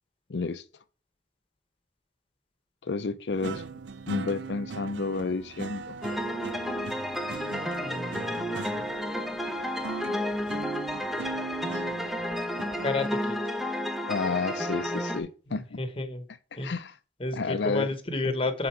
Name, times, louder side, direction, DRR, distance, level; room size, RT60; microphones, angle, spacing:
voice 1, 0.3-0.6 2.8-3.6 4.1-6.0 14.1-15.7 16.6-16.9 17.3-17.9, left 4 dB, 70° left, 0.5 m, -30 dB
sound 1, 3.3-13.1, right 4 dB, 80° right, 0.5 m, -39 dB
sound 2, 6.0-15.2, equal, ahead, 0.6 m, -32 dB
voice 2, 7.8-8.9 12.8-13.4 15.6-16.3 16.5-16.7 17.2-18.7, left 2 dB, 30° left, 1.0 m, -32 dB
7.7 x 3.9 x 4.5 m
head